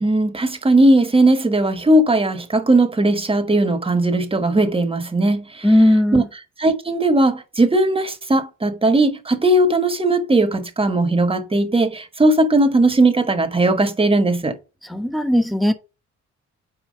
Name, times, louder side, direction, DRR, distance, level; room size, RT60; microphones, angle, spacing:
voice 1, 0.0-5.6 6.1-6.2 6.6-14.5, right 2 dB, 20° right, 1.4 m, -18 dB
voice 2, 5.6-6.3 14.8-15.7, left 1 dB, ahead, 1.3 m, -17 dB
5.7 x 4.5 x 6.4 m
cardioid pair, 90°, 30 cm